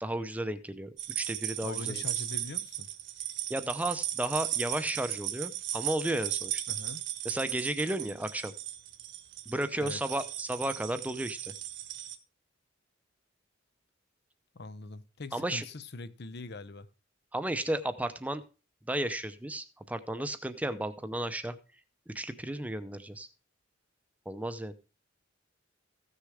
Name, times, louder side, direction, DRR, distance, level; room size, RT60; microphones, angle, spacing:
voice 1, 0.0-2.0 3.5-6.6 7.2-8.5 9.5-11.5 15.3-15.6 17.3-18.4 18.9-21.6 22.1-23.3 24.3-24.7, right 1 dB, 5° right, 0.7 m, -33 dB
sound 1, 1.0-12.1, right 12 dB, 60° right, 1.2 m, -36 dB
voice 2, 1.6-2.9 6.7-7.0 9.8-10.0 14.5-16.9, left 3 dB, 55° left, 0.8 m, -42 dB
15.0 x 6.6 x 4.9 m
head